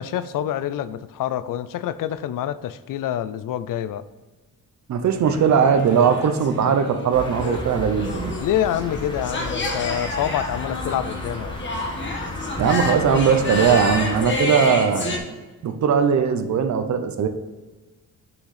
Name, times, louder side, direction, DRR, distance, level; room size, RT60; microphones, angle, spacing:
voice 1, 0.0-4.0 8.4-11.6, left 11 dB, 80° left, 14 dB, 0.5 m, -26 dB
voice 2, 4.9-8.3 12.6-15.2 15.6-17.3, right 7 dB, 60° right, 8 dB, 0.8 m, -19 dB
sound 1, 5.2-15.2, left 2 dB, 35° left, 1.3 m, -29 dB
sound 2, 7.1-14.2, left 1 dB, 15° left, 1.1 m, -34 dB
6.3 x 6.1 x 4.9 m, 1.3 s
wide cardioid pair, 150°, 32 cm